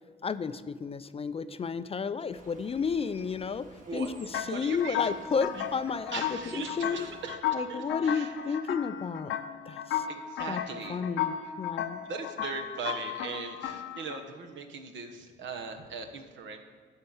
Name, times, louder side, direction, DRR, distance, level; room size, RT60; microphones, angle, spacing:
voice 1, 0.2-7.1 7.5-9.3 9.7-10.1 10.5-10.6 10.9-12.0, left 5 dB, 30° left, 13 dB, 0.4 m, -32 dB
sound 1, 2.3-7.4, right 2 dB, 40° right, 1.7 m, -54 dB
voice 2, 3.8-5.1 5.5-5.6 6.1-7.4 7.7-8.3 10.1-11.0 12.0-16.6, right 5 dB, 70° right, 5 dB, 1.2 m, -39 dB
sound 2, 4.3-14.2, left 9 dB, 75° left, 0.7 m, -35 dB
12.5 x 4.5 x 7.0 m, 1.5 s
cardioid pair, 90°, 20 cm